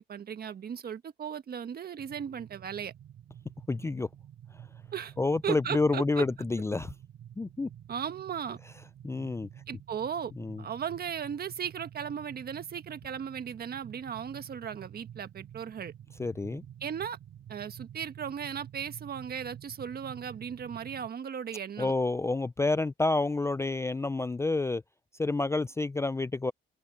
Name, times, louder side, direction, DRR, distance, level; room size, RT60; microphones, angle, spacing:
voice 1, 0.0-2.9 4.9-5.1 5.4-6.2 7.9-8.6 9.7-10.3 10.6-15.9 16.8-17.2 17.5-21.9, right 8 dB, 50° right, 1.5 m, -36 dB
sound 1, 2.0-21.1, right 10 dB, 70° right, 3.0 m, -50 dB
voice 2, 3.7-4.1 5.2-6.9 7.4-7.7 9.0-9.5 10.4-10.6 16.2-16.6 21.8-24.8 25.2-26.5, left 3 dB, 15° left, 0.4 m, -29 dB
open air
cardioid pair, 90°, 20 cm